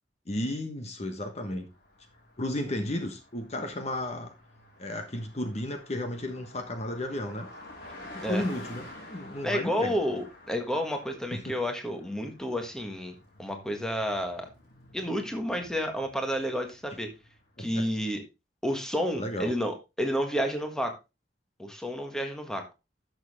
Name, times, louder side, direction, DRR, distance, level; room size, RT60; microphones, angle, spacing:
voice 1, 0.3-1.7 2.4-4.3 4.8-7.5 8.1-9.9 11.3-11.6 17.6-17.9 19.1-19.5, left 1 dB, 35° left, 6 dB, 1.3 m, -33 dB
Car passing by, 1.6-17.6, left 1 dB, 55° left, 4.3 m, -50 dB
voice 2, 9.4-14.5 14.9-17.1 17.6-18.2 18.6-20.9 21.6-22.6, equal, 5° left, 4 dB, 1.6 m, -30 dB
12.0 x 6.5 x 3.6 m, 0.25 s
head